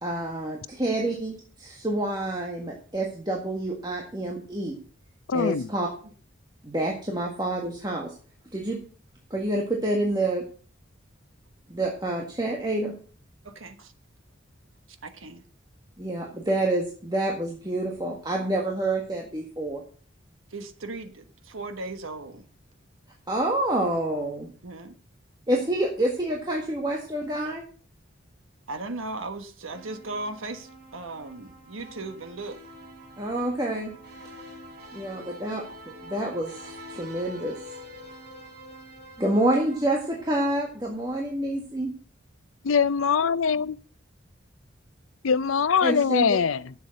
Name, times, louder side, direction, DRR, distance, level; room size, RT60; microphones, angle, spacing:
voice 1, 0.0-4.8 5.3-5.9 6.6-8.2 8.5-8.8 9.3-10.4 11.7-12.9 16.0-19.8 23.3-24.5 25.5-27.6 33.2-33.9 34.9-37.7 39.2-41.9 45.8-46.4, right 1 dB, 20° right, 1.7 m, -28 dB
voice 2, 5.3-5.7 42.6-43.8 45.2-46.7, left 6 dB, 90° left, 0.5 m, -23 dB
voice 3, 13.4-13.9 15.0-15.4 20.5-22.5 24.6-24.9 28.7-32.6, right 2 dB, 90° right, 1.3 m, -37 dB
sound 1, 29.7-41.0, equal, 50° right, 3.8 m, -46 dB
11.0 x 7.3 x 6.4 m
head